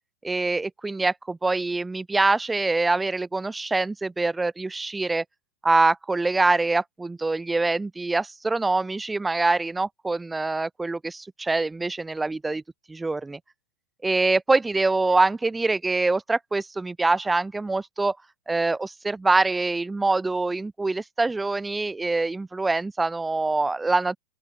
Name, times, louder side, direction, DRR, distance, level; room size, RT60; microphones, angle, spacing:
voice 1, 0.2-5.2 5.6-12.6 12.9-13.4 14.0-18.2 18.5-24.2, right 3 dB, 10° right, 0.4 m, -24 dB
open air
figure-of-eight pair, 90°, 0 cm